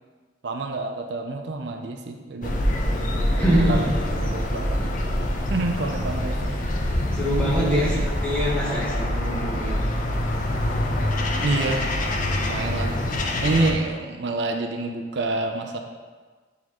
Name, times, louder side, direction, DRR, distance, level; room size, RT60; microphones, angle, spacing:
voice 1, 0.4-2.6 3.4-3.9 4.2-4.7 5.5-6.6 7.6-8.1 11.4-11.8 12.4-13.0 13.4-15.8, right 2 dB, 65° right, 4 dB, 0.5 m, -27 dB
sound 1, 2.4-13.7, left 1 dB, 45° left, 0.7 m, -25 dB
voice 2, 3.4-3.8 7.1-8.0 8.2-9.8, equal, 5° left, -7 dB, 1.4 m, -24 dB
9.4 x 4.1 x 3.0 m, 1.4 s
head